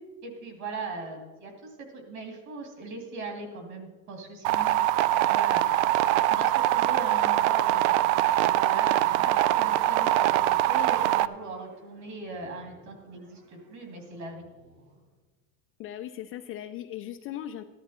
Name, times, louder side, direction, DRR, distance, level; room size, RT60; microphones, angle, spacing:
voice 1, 0.2-4.8 5.2-5.6 6.3-7.9 8.3-14.4, right 3 dB, 45° right, 4 dB, 2.9 m, -39 dB
sound 1, 4.4-11.3, right 14 dB, 75° right, 0.5 m, -23 dB
sound 2, 8.2-15.1, right 1 dB, 60° right, 4.4 m, -55 dB
voice 2, 15.8-17.6, left 11 dB, 35° left, 6 dB, 0.4 m, -38 dB
14.5 x 11.0 x 4.3 m, 1.2 s
cardioid pair, 150°, 41 cm